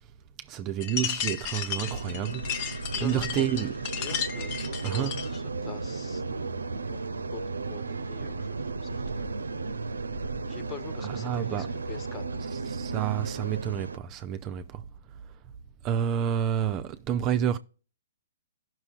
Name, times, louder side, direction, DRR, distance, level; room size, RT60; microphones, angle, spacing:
voice 1, 0.4-3.7 4.8-5.3 11.0-11.7 12.5-14.8 15.8-17.6, right 9 dB, 30° right, 0.5 m, -30 dB
sound 1, 0.8-5.4, left 8 dB, 40° left, 1.0 m, -34 dB
sound 2, 1.8-14.0, right 3 dB, 90° right, 0.5 m, -34 dB
voice 2, 2.9-6.2 6.9-9.3 10.5-12.2 12.6-12.7, left 5 dB, 25° left, 1.3 m, -44 dB
15.5 x 6.1 x 2.4 m
hypercardioid pair, 125°, 0 cm